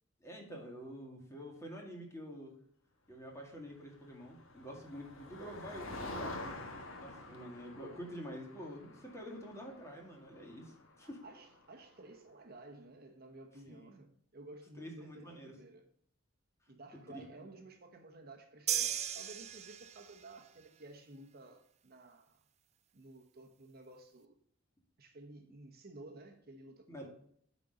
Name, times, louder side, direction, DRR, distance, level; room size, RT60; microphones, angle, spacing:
voice 1, 0.2-2.5 3.1-6.6 7.0-11.2 13.7-13.8 14.8-15.5 17.1-17.2 26.9-27.1, equal, 15° left, 2.0 m, -47 dB
Motor vehicle (road), 4.0-11.8, left 2 dB, 85° left, 1.4 m, -48 dB
voice 2, 11.0-15.9 16.7-22.4 22.9-24.4 25.0-27.1, right 2 dB, 50° right, 1.0 m, -54 dB
sound 1, 18.7-20.2, right 10 dB, 35° right, 0.5 m, -36 dB
8.8 x 4.2 x 5.1 m
head